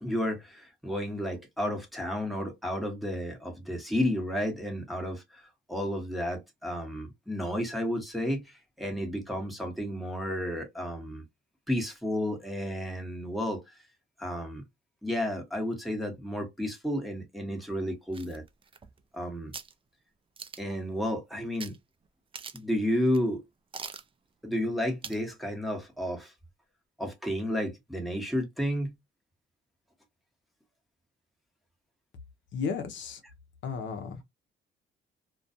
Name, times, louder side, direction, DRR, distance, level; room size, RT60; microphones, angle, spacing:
voice 1, 0.0-5.4 5.7-11.2 11.7-13.8 14.2-14.6 15.0-18.4 19.1-19.5 20.6-21.7 22.5-23.4 24.4-26.3 27.0-28.9, equal, ahead, 1.0 m, -32 dB
sound 1, 18.1-19.1 19.5-19.7 20.4-20.8 21.6-21.8 22.0-22.1 22.3-22.8 23.1-23.2 23.7-24.1 25.0-25.3 25.7-25.8, right 5 dB, 25° right, 0.4 m, -42 dB
voice 2, 32.5-33.2 33.6-34.2, left 5 dB, 70° left, 0.6 m, -34 dB
2.4 x 2.2 x 2.5 m
cardioid pair, 90°, 20 cm